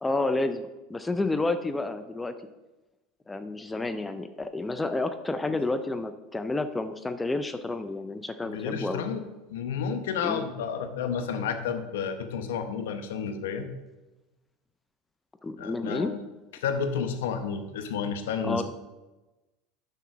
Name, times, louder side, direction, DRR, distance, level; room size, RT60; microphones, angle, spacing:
voice 1, 0.0-2.3 3.3-9.0 10.2-10.4 15.4-16.1 18.4-18.6, left 2 dB, 10° left, 10 dB, 0.5 m, -30 dB
voice 2, 8.4-9.2 9.5-13.7 15.6-16.2 16.5-18.6, left 6 dB, 85° left, 8 dB, 0.9 m, -31 dB
6.9 x 5.7 x 6.2 m, 1.1 s
supercardioid pair, 115°, 0 cm